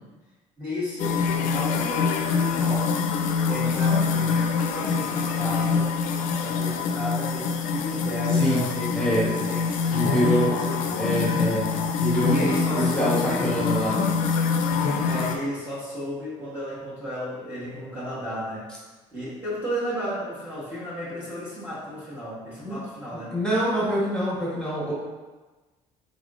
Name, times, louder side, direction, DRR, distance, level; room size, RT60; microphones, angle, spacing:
voice 1, 0.6-2.9 3.5-5.9 6.4-11.1 12.3-14.0 15.0-18.7 19.1-23.3, equal, 15° right, -11 dB, 1.3 m, -33 dB
sound 1, 1.0-15.4, left 5 dB, 75° left, 0.4 m, -25 dB
voice 2, 8.3-8.7 8.9-9.2 9.9-10.5 11.0-11.6 12.0-13.1 13.4-13.9 22.6-22.8 23.3-24.9, right 1 dB, 5° left, -8 dB, 1.5 m, -25 dB
3.8 x 3.4 x 2.4 m, 1.2 s
cardioid pair, 95°, 14 cm